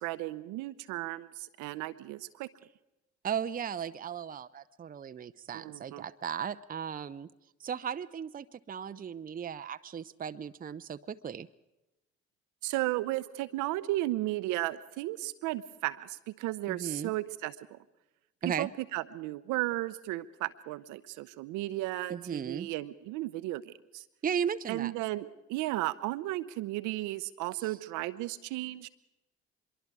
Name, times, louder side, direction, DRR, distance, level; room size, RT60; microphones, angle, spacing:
voice 1, 0.0-2.5 5.5-6.0 12.6-17.8 18.4-24.0 24.7-28.9, right 17 dB, 65° right, 13 dB, 0.8 m, -34 dB
voice 2, 3.2-7.3 7.6-11.5 16.7-17.1 18.4-18.7 22.1-22.7 24.2-24.9 27.6-27.7, right 8 dB, 25° right, 12 dB, 0.7 m, -36 dB
25.0 x 22.5 x 4.8 m, 0.94 s
figure-of-eight pair, 40°, 33 cm